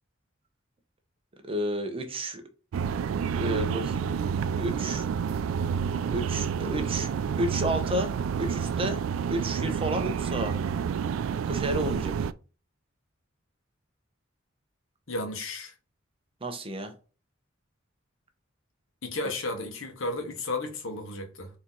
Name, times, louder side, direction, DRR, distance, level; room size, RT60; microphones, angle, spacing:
voice 1, 1.4-2.4 3.4-4.1 4.6-5.1 6.1-7.1 7.4-9.0 9.3-10.6 11.5-12.1 16.4-16.9 19.2-19.3, right 1 dB, 30° right, 0.8 m, -31 dB
sound 1, 2.7-12.3, right 7 dB, 80° right, 0.3 m, -29 dB
voice 2, 15.1-15.7 19.0-21.5, left 2 dB, 80° left, 1.1 m, -33 dB
4.1 x 2.9 x 3.8 m
head